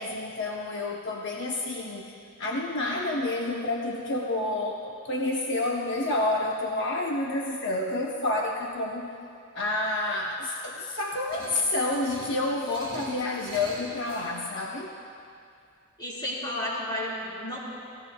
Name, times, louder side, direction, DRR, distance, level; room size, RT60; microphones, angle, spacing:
voice 1, 0.0-9.1 9.5-15.0, left 2 dB, 55° left, -1 dB, 0.9 m, -29 dB
sound 1, 11.3-14.3, right 1 dB, 25° right, 4.5 m, -44 dB
voice 2, 16.0-17.6, left 1 dB, 20° left, -7 dB, 3.9 m, -32 dB
30.0 x 16.0 x 2.3 m, 2.4 s
head